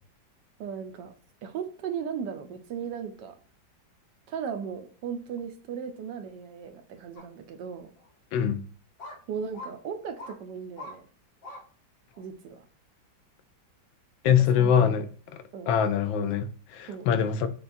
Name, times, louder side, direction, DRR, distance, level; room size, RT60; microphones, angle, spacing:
voice 1, 0.6-1.1 1.4-3.3 4.3-7.9 9.3-11.0 12.2-12.6 14.2-15.0 15.5-15.7 16.9-17.1, right 7 dB, 70° right, 1.1 m, -37 dB
sound 1, 7.2-7.3 8.0-8.1 9.0-9.2 9.5-9.7 10.2-10.4 10.8-11.0 11.4-11.6 12.1-12.2, left 2 dB, 50° left, 1.1 m, -41 dB
voice 2, 14.2-15.1 15.7-17.5, left 8 dB, 85° left, 1.3 m, -23 dB
6.7 x 2.3 x 2.5 m
omnidirectional pair, 2.1 m